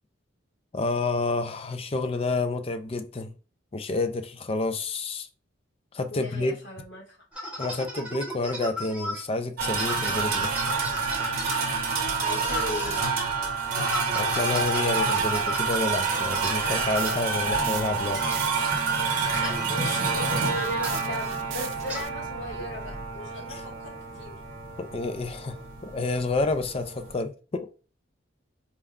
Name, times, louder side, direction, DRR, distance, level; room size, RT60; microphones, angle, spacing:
voice 1, 0.7-3.3 3.7-5.3 5.9-6.6 7.6-10.5 14.1-18.2 23.5-23.6 24.8-27.7, left 3 dB, 30° left, 0.4 m, -29 dB
voice 2, 6.1-7.2 12.2-13.2 19.4-24.3, equal, 70° left, 1.6 m, -37 dB
sound 1, 7.3-9.2 9.8-11.6 12.2-13.1 13.8-15.8 16.3-16.6 16.9-17.2 18.2-18.4 19.3-19.6 20.8-21.1 21.9-22.0, equal, 5° right, 0.8 m, -35 dB
sound 2, 9.6-27.2, right 4 dB, 45° right, 1.0 m, -28 dB
sound 3, 15.2-22.1, right 8 dB, 85° right, 0.5 m, -41 dB
4.3 x 2.2 x 3.5 m
head